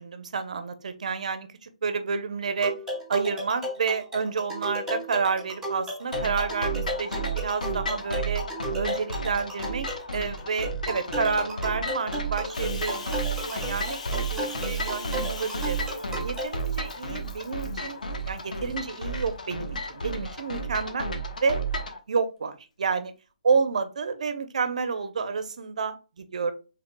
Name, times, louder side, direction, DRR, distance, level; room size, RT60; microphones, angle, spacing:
voice 1, 0.0-2.7 3.1-8.4 8.7-9.9 10.1-13.2 13.5-15.8 16.2-18.0 18.3-21.6 22.1-23.1 23.4-26.5, right 5 dB, 60° right, 9 dB, 0.8 m, -29 dB
sound 1, 2.6-16.5, equal, 5° right, 2.3 m, -34 dB
sound 2, 6.1-22.0, right 2 dB, 85° left, 1.1 m, -33 dB
Bathtub (filling or washing), 12.5-17.9 18.3-18.7 19.3-20.1, left 5 dB, 60° left, 0.8 m, -42 dB
5.7 x 3.7 x 2.2 m, 0.32 s
hypercardioid pair, 165°, 4 cm